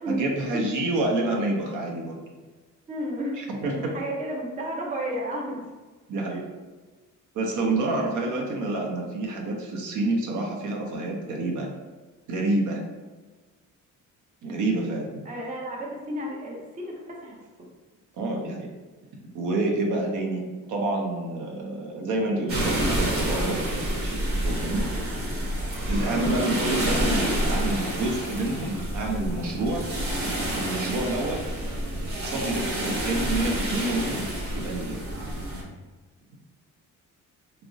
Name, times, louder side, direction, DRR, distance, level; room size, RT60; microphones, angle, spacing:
voice 1, 0.1-2.1 3.4-3.9 6.1-6.4 7.3-11.7 12.3-12.8 14.4-15.2 18.1-18.7 19.3-20.4 20.7-24.2 24.4-24.9 25.9-30.0 30.6-31.4 32.2-34.2 34.5-35.0, right 2 dB, 70° right, 0 dB, 0.6 m, -28 dB
voice 2, 2.9-5.7 15.2-17.4, right 1 dB, 25° right, -2 dB, 0.5 m, -32 dB
sound 1, 22.5-35.6, right 1 dB, 45° right, 0.9 m, -28 dB
3.5 x 2.0 x 2.6 m, 1.3 s
cardioid pair, 130°, 32 cm